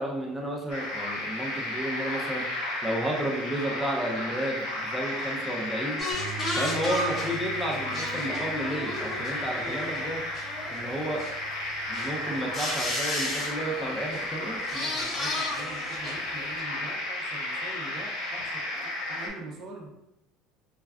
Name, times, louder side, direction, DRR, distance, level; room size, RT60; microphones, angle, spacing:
voice 1, 0.0-2.5 2.8-6.0 6.5-10.2 10.7-11.2 11.9-14.6, right 1 dB, ahead, -2 dB, 0.5 m, -32 dB
sound 1, 0.7-19.3, left 1 dB, 85° left, 0.7 m, -33 dB
sound 2, 6.0-11.3 11.7-12.1 12.5-13.6 14.1-14.3 14.5-16.3 16.6-16.7, left 1 dB, 30° left, 0.8 m, -34 dB
sound 3, 6.1-12.4, right 10 dB, 55° left, 1.2 m, -44 dB
voice 2, 14.7-19.9, right 2 dB, 55° right, 0 dB, 0.6 m, -43 dB
3.4 x 2.3 x 2.3 m, 0.86 s
supercardioid pair, 120°, 0 cm